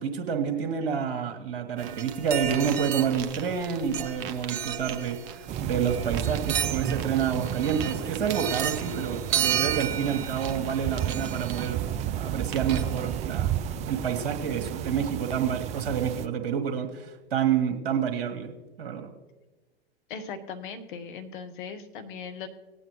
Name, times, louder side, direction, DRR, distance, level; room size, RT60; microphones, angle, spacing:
voice 1, 0.0-11.9 12.2-13.5 13.9-19.1, right 7 dB, 60° right, 5 dB, 1.6 m, -29 dB
sound 1, 1.8-13.2, right 9 dB, 45° right, 1.0 m, -33 dB
sound 2, 5.5-16.3, right 10 dB, 25° right, 0.4 m, -32 dB
voice 2, 20.1-22.5, left 6 dB, 55° left, 8 dB, 1.2 m, -38 dB
18.0 x 9.0 x 3.1 m, 1.2 s
figure-of-eight pair, 100°, 30 cm